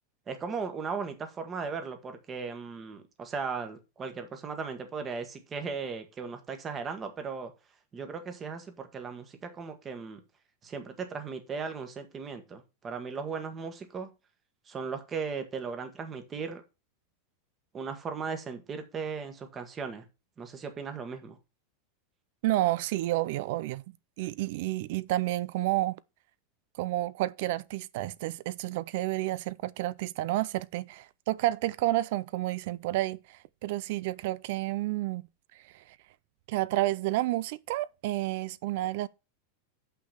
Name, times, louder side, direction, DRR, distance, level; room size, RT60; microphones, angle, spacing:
voice 1, 0.3-7.5 7.9-10.2 10.6-14.1 14.7-16.6 17.7-20.0 20.4-21.4, right 5 dB, 20° right, 1.4 m, -37 dB
voice 2, 22.4-23.8 24.2-26.0 26.8-35.2 35.7-35.8 36.5-39.1, right 16 dB, 60° right, 0.4 m, -30 dB
6.6 x 5.8 x 5.8 m
supercardioid pair, 155°, 0 cm